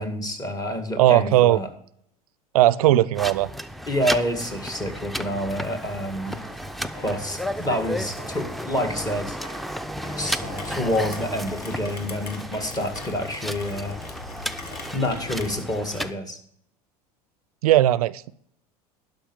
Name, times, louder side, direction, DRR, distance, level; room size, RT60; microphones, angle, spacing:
voice 1, 0.0-1.7 3.9-6.4 7.0-9.4 10.2-14.0 14.9-16.4, left 1 dB, 20° left, 7 dB, 2.1 m, -28 dB
voice 2, 1.0-1.6 2.5-3.5 17.6-18.3, right 14 dB, 70° right, 20 dB, 0.4 m, -18 dB
sound 1, 3.1-16.1, equal, ahead, 0.5 m, -33 dB
sound 2, 5.7-15.1, left 1 dB, 50° left, 5.2 m, -46 dB
Rain, 10.4-15.6, left 4 dB, 85° left, 1.3 m, -40 dB
11.5 x 5.4 x 7.2 m, 0.68 s
hypercardioid pair, 75°, 20 cm